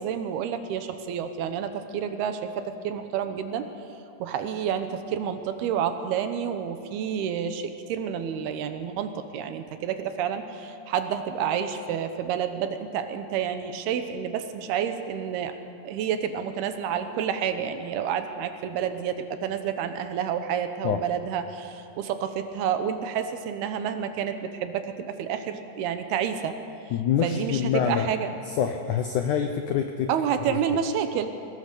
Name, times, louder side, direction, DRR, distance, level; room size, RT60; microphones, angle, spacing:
voice 1, 0.0-3.7 4.2-15.5 15.8-26.6 27.2-28.3 30.1-31.3, right 8 dB, 75° right, 8 dB, 2.9 m, -29 dB
voice 2, 26.9-28.1 28.6-30.1 30.5-30.6, left 8 dB, 80° left, 5 dB, 1.7 m, -25 dB
22.0 x 18.0 x 6.8 m, 2.7 s
omnidirectional pair, 4.7 m